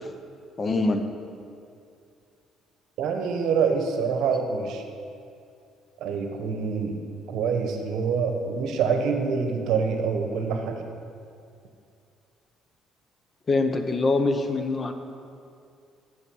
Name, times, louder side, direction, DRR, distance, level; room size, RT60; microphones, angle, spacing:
voice 1, 0.6-1.0 13.5-14.9, left 3 dB, 30° left, 7 dB, 0.7 m, -24 dB
voice 2, 3.0-4.8 6.0-7.0 7.3-10.8, right 5 dB, 75° right, 5 dB, 0.9 m, -26 dB
6.9 x 6.7 x 6.1 m, 2.4 s
cardioid pair, 100°, 0 cm